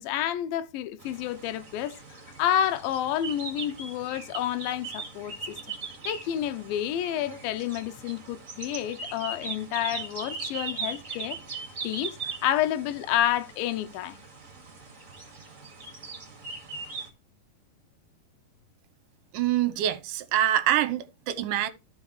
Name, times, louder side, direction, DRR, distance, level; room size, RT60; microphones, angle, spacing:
voice 1, 0.0-2.0 2.4-5.6 6.1-11.4 11.8-14.2, left 11 dB, 80° left, 2.5 m, -29 dB
sound 1, 1.0-17.1, right 4 dB, 30° right, 1.7 m, -40 dB
voice 2, 19.3-21.7, right 12 dB, 75° right, 2.2 m, -25 dB
14.5 x 5.3 x 3.1 m
omnidirectional pair, 4.2 m